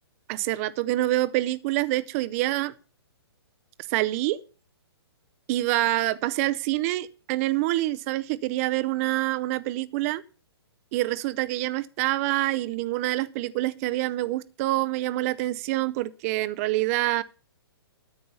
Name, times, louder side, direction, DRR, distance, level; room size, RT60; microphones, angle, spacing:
voice 1, 0.3-2.7 3.9-4.4 5.5-10.2 10.9-17.2, right 17 dB, 35° right, 0.6 m, -26 dB
9.7 x 8.4 x 6.9 m
hypercardioid pair, 135°, 14 cm